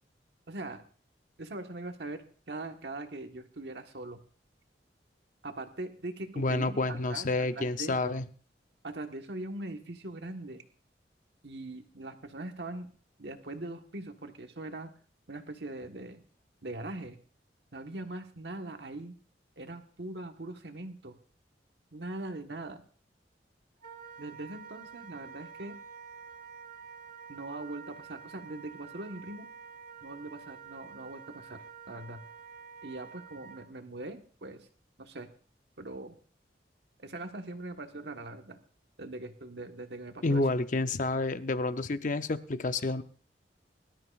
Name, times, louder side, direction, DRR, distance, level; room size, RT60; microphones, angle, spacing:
voice 1, 0.5-0.8 1.4-2.2 2.5-4.2 5.4-8.1 8.8-10.6 11.4-12.9 13.2-14.9 15.3-16.2 16.6-17.2 17.7-19.1 19.6-21.2 21.9-22.8 24.2-25.8 27.3-29.5 30.0-32.2 32.8-34.7 35.0-35.3 35.8-36.2 37.0-38.6 39.0-40.4, right 2 dB, 70° right, 1.4 m, -41 dB
voice 2, 6.4-8.2 40.2-43.0, left 2 dB, 45° left, 0.7 m, -29 dB
Wind instrument woodwind instrument, 23.8-33.7, right 6 dB, 50° right, 1.3 m, -48 dB
23.0 x 12.5 x 2.5 m
head